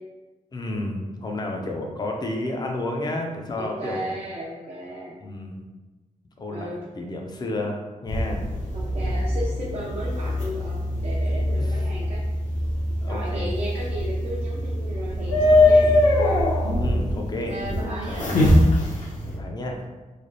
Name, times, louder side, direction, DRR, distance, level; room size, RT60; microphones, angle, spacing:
voice 1, 0.5-4.1 5.2-5.7 6.4-6.7 7.0-8.5 9.0-9.2 11.6-11.7 13.0-13.5 16.6-17.6 18.1-18.5 19.2-19.8, left 1 dB, 30° left, 1 dB, 0.5 m, -31 dB
voice 2, 3.6-5.2 6.5-6.8 8.7-12.2 13.1-15.9 17.5-18.3, right 1 dB, 55° right, -7 dB, 0.6 m, -34 dB
sound 1, 8.1-19.4, left 1 dB, 75° left, 0.9 m, -22 dB
3.3 x 2.2 x 3.8 m, 1.2 s
wide cardioid pair, 155°, 13 cm